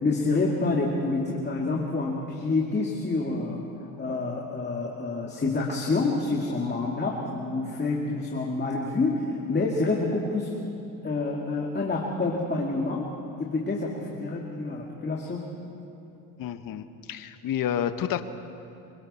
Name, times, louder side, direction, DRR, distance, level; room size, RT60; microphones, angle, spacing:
voice 1, 0.0-10.5 11.0-13.1 13.4-15.5, left 3 dB, 25° left, -2 dB, 2.4 m, -28 dB
voice 2, 16.4-18.2, left 10 dB, 50° left, 9 dB, 1.2 m, -30 dB
26.0 x 24.0 x 4.3 m, 2.7 s
cardioid pair, 95°, 42 cm